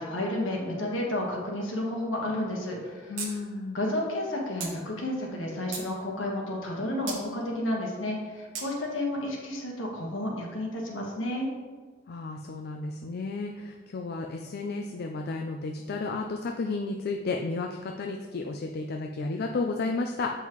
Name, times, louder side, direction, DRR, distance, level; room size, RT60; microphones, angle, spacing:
voice 1, 0.0-3.2 3.7-11.5, left 1 dB, 80° left, -1 dB, 1.3 m, -31 dB
voice 2, 3.1-3.8 12.1-20.3, left 3 dB, 55° left, 3 dB, 0.4 m, -32 dB
sound 1, 3.2-3.3 3.6-3.7 4.6-4.7 5.3-5.9 7.1-7.2 8.5-8.7, right 5 dB, 85° right, 1.2 m, -35 dB
7.3 x 5.5 x 3.0 m, 1.4 s
head